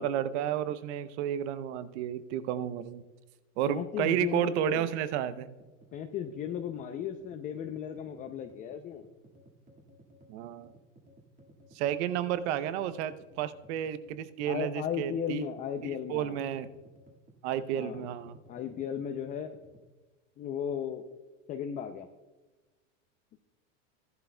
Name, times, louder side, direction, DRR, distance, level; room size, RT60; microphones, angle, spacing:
voice 1, 0.0-3.0 3.6-5.5 10.3-10.7 11.7-15.5 15.8-16.7 17.4-18.4, right 10 dB, 60° right, 14 dB, 0.8 m, -32 dB
voice 2, 3.7-4.9 5.9-9.0 14.5-16.4 17.8-18.0 18.5-19.5 20.4-21.1 21.5-22.1, left 8 dB, 20° left, 5 dB, 0.4 m, -36 dB
sound 1, 5.6-19.9, right 1 dB, 20° right, 1.7 m, -58 dB
15.0 x 11.0 x 2.2 m, 1.2 s
supercardioid pair, 135°, 39 cm